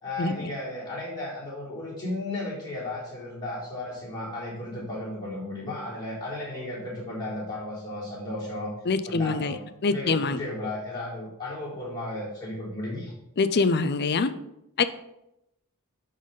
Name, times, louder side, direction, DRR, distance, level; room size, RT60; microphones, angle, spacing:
voice 1, 0.0-8.7 9.0-9.6 9.9-13.1, left 1 dB, 20° left, -7 dB, 3.9 m, -34 dB
voice 2, 8.9-9.6 9.8-10.4 13.4-14.3 14.8-14.9, left 4 dB, 50° left, 13 dB, 0.5 m, -24 dB
11.5 x 4.1 x 5.5 m, 0.86 s
head